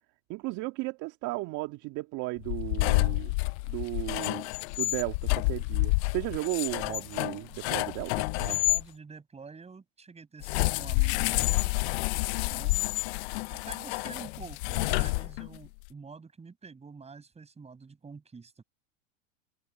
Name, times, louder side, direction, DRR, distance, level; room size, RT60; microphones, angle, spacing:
voice 1, 0.3-4.5 4.8-8.6, right 21 dB, 50° right, 1.9 m, -35 dB
sound 1, 2.4-8.8 10.4-15.7, left 25 dB, 55° left, 0.7 m, -29 dB
voice 2, 8.4-11.7 12.3-13.0 13.5-18.6, right 5 dB, 15° right, 6.7 m, -47 dB
hypercardioid pair, 105°, 38 cm